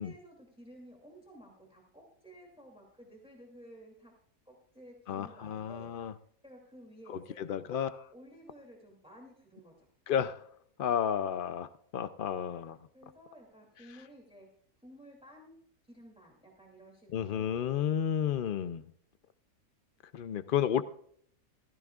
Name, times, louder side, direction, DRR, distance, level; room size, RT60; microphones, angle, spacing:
voice 1, 0.0-4.1 4.5-5.9 6.4-7.4 8.1-9.7 12.9-14.5 14.8-15.6 15.9-18.0, right 1 dB, 5° right, 0 dB, 2.6 m, -54 dB
voice 2, 5.1-6.1 7.4-8.0 10.1-10.4 10.8-11.7 11.9-12.8 17.1-18.8 20.1-20.8, left 9 dB, 75° left, 12 dB, 0.5 m, -31 dB
15.5 x 14.0 x 2.4 m, 0.63 s
omnidirectional pair, 1.6 m